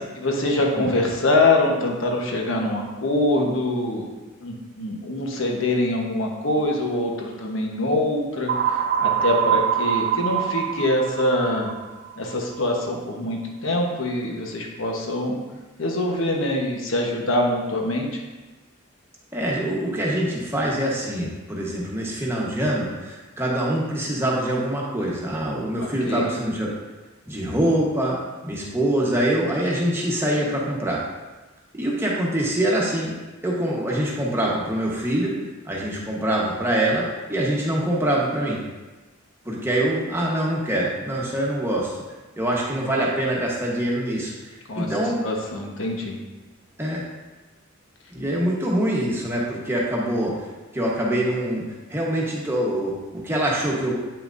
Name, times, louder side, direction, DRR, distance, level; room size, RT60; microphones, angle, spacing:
voice 1, 0.2-4.0 4.4-11.7 12.2-15.4 15.8-18.2 25.8-26.3 44.7-46.2, left 1 dB, 65° left, 0 dB, 1.1 m, -24 dB
sound 1, 8.5-12.3, right 9 dB, 40° right, 0.3 m, -24 dB
voice 2, 19.3-26.7 27.3-28.2 28.4-31.0 31.7-33.2 33.4-35.4 35.6-38.6 39.4-42.0 42.4-44.3 44.8-45.3 46.8-47.0 48.1-50.4 50.7-51.6 51.9-53.9, right 1 dB, 10° right, -4 dB, 1.1 m, -24 dB
8.8 x 5.8 x 2.6 m, 1.2 s
head